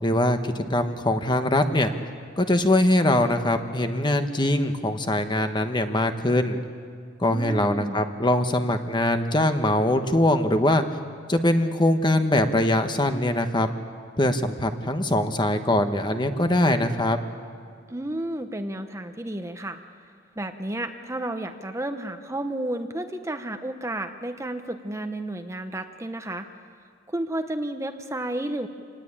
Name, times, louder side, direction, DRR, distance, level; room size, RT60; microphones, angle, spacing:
voice 1, 0.0-1.9 2.4-6.6 7.2-10.8 11.3-13.7 14.2-17.2, left 1 dB, 25° left, 7 dB, 1.2 m, -22 dB
voice 2, 7.2-8.0 17.9-19.8 20.4-26.5 27.1-28.7, right 1 dB, 15° right, 7 dB, 0.9 m, -32 dB
26.0 x 19.5 x 8.8 m, 2.1 s
head